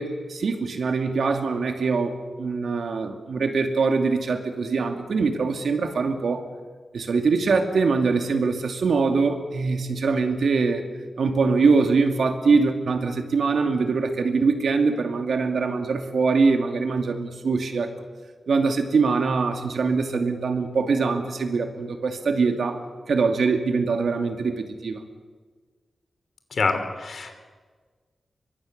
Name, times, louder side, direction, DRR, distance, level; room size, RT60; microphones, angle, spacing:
voice 1, 0.0-6.4 6.9-10.8 11.2-17.9 18.5-25.0, right 4 dB, 75° right, 5 dB, 2.5 m, -23 dB
voice 2, 26.5-27.3, left 4 dB, 70° left, 8 dB, 3.1 m, -26 dB
23.5 x 23.0 x 6.7 m, 1.5 s
cardioid pair, 70°, 0 cm